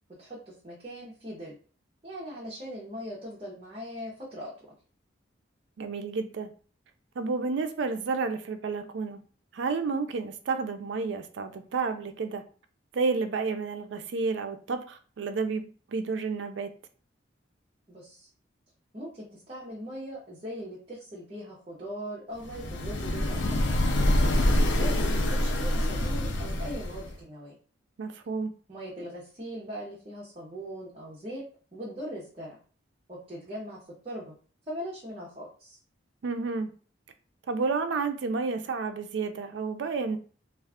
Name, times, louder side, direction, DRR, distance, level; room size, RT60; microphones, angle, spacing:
voice 1, 0.2-1.5 2.0-4.5 17.9-18.3 18.9-23.8 24.7-27.6 28.7-31.4 31.7-32.6 33.1-33.8 34.0-34.3 34.7-35.8, equal, 30° right, 0.7 m, -40 dB
voice 2, 5.8-6.5 7.2-9.2 9.5-12.4 12.9-16.7 28.0-28.5 36.2-36.7 37.5-40.2, right 4 dB, 65° right, 0.4 m, -31 dB
sound 1, 22.4-27.2, left 1 dB, 65° left, 0.5 m, -26 dB
2.4 x 2.3 x 3.4 m
head